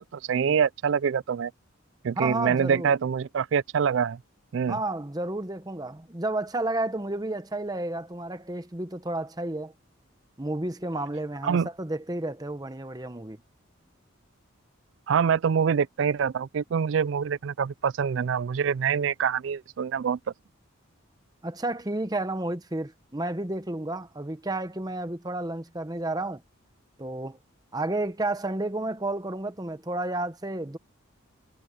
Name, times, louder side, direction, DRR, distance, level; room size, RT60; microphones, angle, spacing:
voice 1, 0.0-1.5 2.0-4.2 4.5-4.8 11.4-11.7 15.1-20.2, right 7 dB, 65° right, 0.3 m, -25 dB
voice 2, 2.2-2.9 4.7-9.7 10.4-13.4 21.4-26.4 27.0-27.4 27.7-30.8, right 2 dB, 20° right, 0.9 m, -31 dB
head